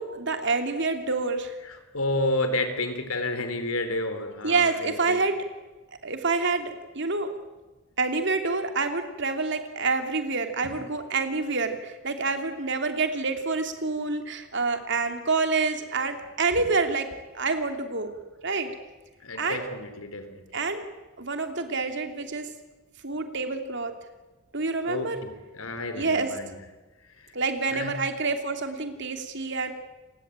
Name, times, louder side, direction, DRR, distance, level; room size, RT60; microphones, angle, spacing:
voice 1, 0.0-1.5 4.4-5.4 6.0-7.3 8.0-17.1 17.3-18.1 18.4-18.7 19.4-19.7 20.5-20.8 21.2-22.5 23.0-23.9 24.5-25.2 26.0-26.3 27.3-29.7, right 4 dB, 55° right, 6 dB, 2.9 m, -27 dB
voice 2, 1.7-5.3 10.6-10.7 19.2-20.4 24.8-26.6 27.2-27.3 27.7-27.9, left 2 dB, 85° left, 9 dB, 3.6 m, -31 dB
29.0 x 19.5 x 9.0 m, 1.2 s
head